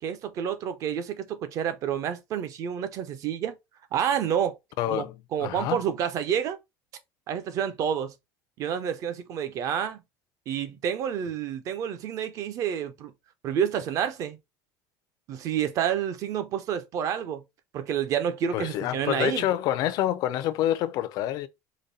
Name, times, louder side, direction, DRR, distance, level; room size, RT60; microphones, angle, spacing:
voice 1, 0.0-3.6 3.9-4.6 4.9-5.0 5.3-6.6 7.3-8.1 8.6-10.0 10.5-13.1 13.4-14.4 15.3-17.4 17.7-19.5, right 8 dB, 40° right, 0.7 m, -29 dB
voice 2, 4.8-5.2 5.4-5.8 18.5-21.5, left 12 dB, 45° left, 0.5 m, -27 dB
5.1 x 2.2 x 4.0 m
cardioid pair, 170°, 9 cm